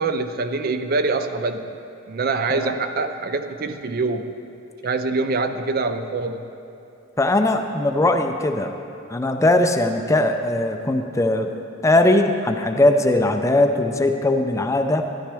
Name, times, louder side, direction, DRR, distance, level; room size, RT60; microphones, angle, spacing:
voice 1, 0.0-1.7 2.1-4.4 4.8-6.5, right 3 dB, 50° right, 9 dB, 0.5 m, -24 dB
voice 2, 7.2-8.7 9.1-11.5 11.8-15.1, left 1 dB, 15° left, 6 dB, 0.4 m, -19 dB
13.0 x 11.5 x 3.4 m, 2.8 s
head